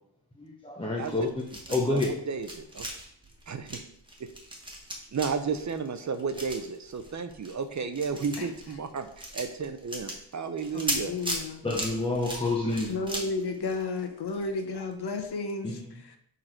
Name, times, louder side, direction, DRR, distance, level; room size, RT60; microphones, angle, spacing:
voice 1, 0.3-2.1 11.6-13.0 15.6-16.2, left 2 dB, 10° left, -2 dB, 0.6 m, -29 dB
sound 1, 1.0-2.1 2.4-14.5 14.8-14.9 15.2-15.3, right 1 dB, 10° right, 1.1 m, -38 dB
voice 2, 2.3-2.9 3.5-3.8 5.1-11.1, right 5 dB, 40° right, 9 dB, 0.6 m, -33 dB
voice 3, 10.7-11.6 12.9-15.7, left 3 dB, 55° left, 5 dB, 0.9 m, -32 dB
6.5 x 3.9 x 4.4 m, 0.72 s
wide cardioid pair, 155°, 48 cm